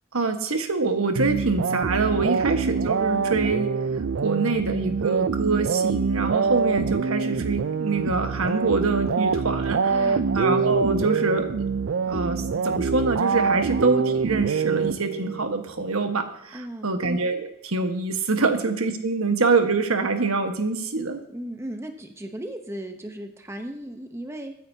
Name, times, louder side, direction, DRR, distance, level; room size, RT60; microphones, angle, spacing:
voice 1, 0.1-3.7 4.2-11.5 12.1-21.2, right 3 dB, 85° right, 6 dB, 1.4 m, -25 dB
sound 1, 1.2-15.5, right 5 dB, 60° right, 0.4 m, -25 dB
voice 2, 9.9-10.3 13.5-13.7 16.5-16.9 18.4-18.5 21.3-24.6, right 1 dB, 10° right, 5 dB, 0.8 m, -36 dB
22.5 x 9.4 x 2.8 m, 0.81 s
head